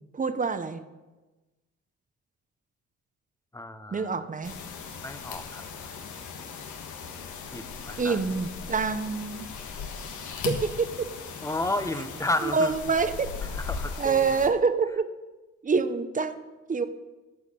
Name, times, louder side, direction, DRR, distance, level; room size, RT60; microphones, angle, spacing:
voice 1, 0.1-0.8 3.9-4.6 8.0-9.5 10.5-11.1 12.4-13.3 14.0-15.1 15.6-16.9, right 5 dB, 25° right, 11 dB, 0.9 m, -26 dB
voice 2, 3.5-4.2 5.0-5.6 7.5-8.3 11.4-12.7 13.5-14.4, left 2 dB, 10° left, 10 dB, 0.9 m, -32 dB
sound 1, 4.4-14.5, left 5 dB, 80° left, 1.5 m, -38 dB
13.5 x 4.8 x 8.5 m, 1.2 s
cardioid pair, 90°, 30 cm